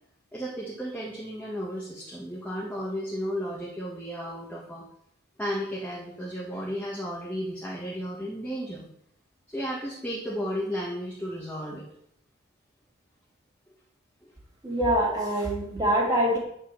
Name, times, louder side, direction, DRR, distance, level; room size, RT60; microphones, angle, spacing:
voice 1, 0.3-4.8 5.4-8.8 9.5-11.8 14.2-14.3, equal, 5° left, -5 dB, 1.7 m, -34 dB
voice 2, 14.6-16.4, right 1 dB, 20° right, -3 dB, 3.0 m, -24 dB
9.8 x 5.4 x 7.0 m, 0.72 s
head